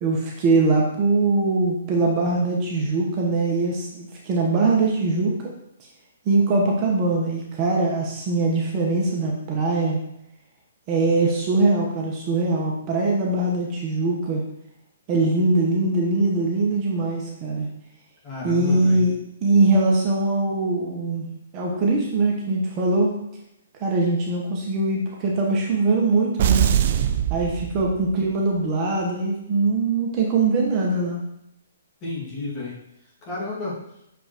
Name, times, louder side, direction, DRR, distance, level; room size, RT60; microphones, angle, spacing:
voice 1, 0.0-5.4 6.3-10.0 10.9-14.4 15.1-17.7 18.4-19.1 19.4-21.2 21.5-23.1 23.8-26.7 27.3-31.2, right 3 dB, 25° right, -2 dB, 1.0 m, -22 dB
voice 2, 18.2-19.0 27.6-27.7 32.0-32.8 33.3-33.8, left 3 dB, 25° left, -5 dB, 2.1 m, -31 dB
sound 1, 26.4-28.3, right 10 dB, 45° right, 0.4 m, -22 dB
6.3 x 5.2 x 3.0 m, 0.79 s
hypercardioid pair, 155°, 0 cm